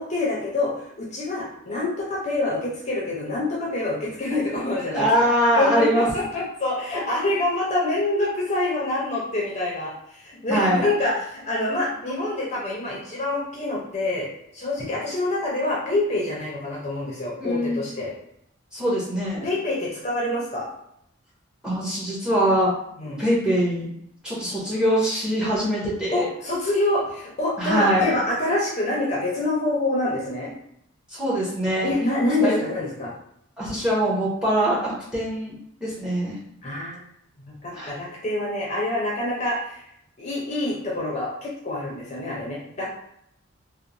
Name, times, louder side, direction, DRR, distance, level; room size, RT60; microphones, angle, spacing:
voice 1, 0.0-5.1 5.6-14.3 14.5-18.1 19.4-20.7 23.0-23.2 26.1-30.5 31.8-33.1 36.6-37.0 37.5-39.8 40.2-42.9, left 2 dB, 35° left, -5 dB, 0.5 m, -26 dB
voice 2, 4.9-6.1 10.5-10.9 17.4-17.8 18.7-19.5 21.6-22.7 23.1-23.9 24.2-26.3 27.6-28.2 31.1-31.9 32.4-32.6 33.6-35.5 35.8-36.4 37.7-37.9, equal, 5° right, -6 dB, 0.7 m, -23 dB
2.9 x 2.0 x 2.5 m, 0.74 s
head